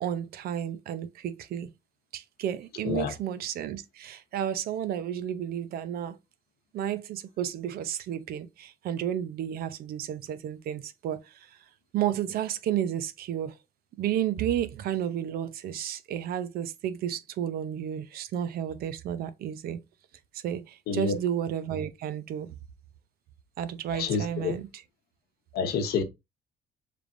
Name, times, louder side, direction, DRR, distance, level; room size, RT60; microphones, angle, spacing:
voice 1, 0.0-1.7 2.1-6.2 6.7-11.6 11.9-13.6 14.0-19.8 20.3-22.6 23.6-24.8, right 10 dB, 65° right, 0.6 m, -32 dB
voice 2, 24.0-24.5 25.5-26.0, left 5 dB, 70° left, 1.0 m, -28 dB
5.1 x 3.3 x 2.5 m
cardioid pair, 110°, 17 cm